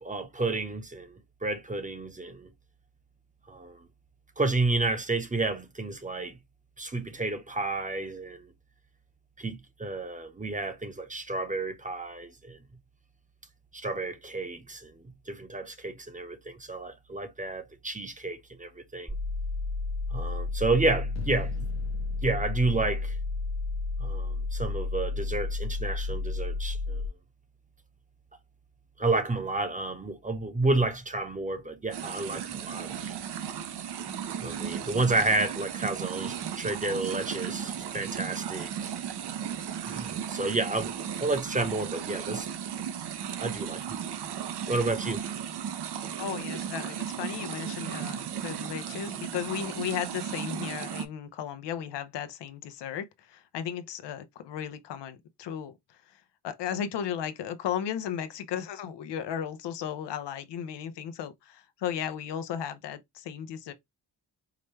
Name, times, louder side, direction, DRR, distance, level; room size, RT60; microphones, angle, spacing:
voice 1, 0.0-2.5 3.5-3.8 4.4-6.4 6.8-8.5 9.4-12.6 13.7-14.9 15.3-19.1 20.1-21.7 22.2-23.2 24.0-27.0 29.0-33.2 34.4-38.9 39.9-40.9 41.2-42.5 43.4-43.8 44.7-45.2, right 2 dB, 20° right, 0.8 m, -31 dB
sound 1, 19.1-27.1, left 3 dB, 5° left, 0.3 m, -32 dB
sound 2, 21.1-24.3, left 6 dB, 45° left, 0.6 m, -47 dB
sound 3, 31.9-51.1, right 8 dB, 70° right, 0.7 m, -35 dB
voice 2, 46.2-63.7, left 9 dB, 80° left, 0.7 m, -35 dB
4.8 x 2.2 x 3.1 m
cardioid pair, 80°, 41 cm